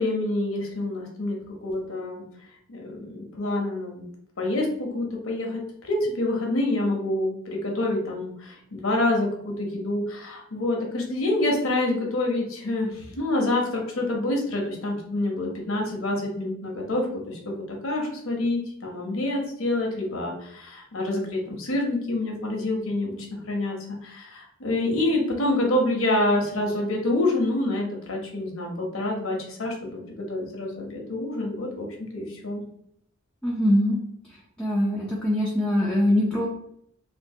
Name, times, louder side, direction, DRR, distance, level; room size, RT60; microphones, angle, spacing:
voice 1, 0.0-2.2 2.7-4.0 4.4-23.2 23.5-32.6, left 2 dB, 70° left, 0 dB, 0.8 m, -27 dB
voice 2, 33.4-34.0 34.6-36.5, left 1 dB, 5° left, -5 dB, 0.4 m, -22 dB
3.3 x 2.6 x 2.7 m, 0.72 s
head